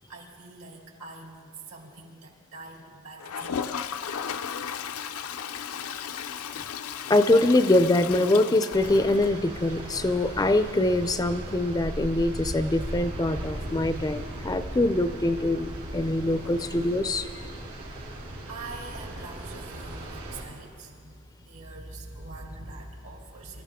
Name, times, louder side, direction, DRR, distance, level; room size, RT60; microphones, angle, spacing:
voice 1, 0.1-3.9 18.5-23.6, right 2 dB, 75° right, 0 dB, 2.6 m, -44 dB
Toilet flush, 3.2-9.9 10.2-10.3 10.5-10.6 10.9-11.0 13.5-13.6 14.9-15.0, left 7 dB, 85° left, 0.5 m, -35 dB
voice 2, 7.1-17.6, left 2 dB, 15° left, 10 dB, 0.4 m, -24 dB
sound 1, 8.7-20.4, right 1 dB, 90° right, 3.7 m, -38 dB
26.0 x 13.0 x 3.6 m, 2.1 s
head